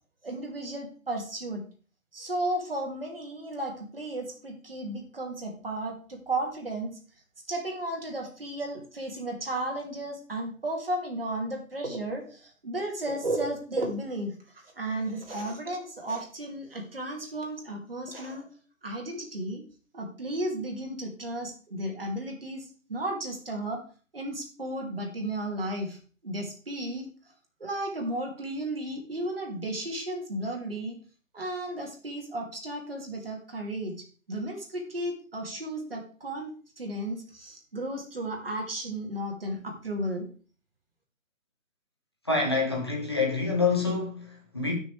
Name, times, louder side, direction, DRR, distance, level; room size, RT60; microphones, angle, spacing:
voice 1, 0.2-1.6 2.1-7.0 7.5-18.5 18.8-19.6 19.9-23.8 24.1-26.0 26.2-27.1 27.6-30.9 31.3-33.9 34.3-40.3, right 1 dB, 45° right, 2.5 m, -34 dB
voice 2, 42.2-44.7, left 4 dB, 20° left, 1.4 m, -27 dB
15.5 x 6.2 x 3.4 m
figure-of-eight pair, 180°, 40 cm